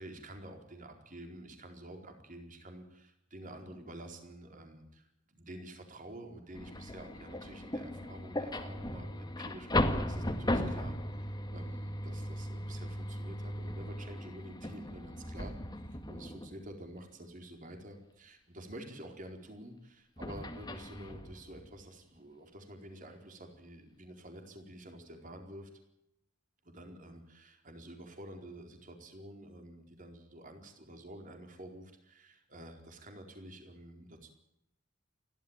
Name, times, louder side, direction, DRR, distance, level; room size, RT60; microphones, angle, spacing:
voice 1, 0.0-15.5 15.9-25.7 26.6-34.3, right 1 dB, 40° right, 4 dB, 4.4 m, -49 dB
sound 1, 6.5-16.7 20.2-21.8, left 1 dB, 20° left, 2.0 m, -37 dB
29.5 x 13.0 x 8.9 m, 0.78 s
head